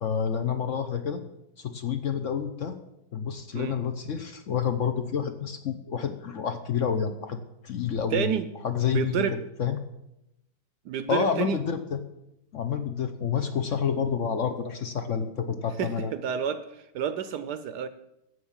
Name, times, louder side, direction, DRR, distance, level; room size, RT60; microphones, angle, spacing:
voice 1, 0.0-1.2 1.6-2.8 3.1-7.4 7.6-9.8 11.1-12.0 12.5-16.1, left 7 dB, 65° left, 8 dB, 0.7 m, -29 dB
voice 2, 8.1-8.5 8.9-9.4 10.9-11.6 15.8-17.9, right 8 dB, 70° right, 12 dB, 1.1 m, -29 dB
11.0 x 8.0 x 7.3 m, 0.88 s
omnidirectional pair, 2.1 m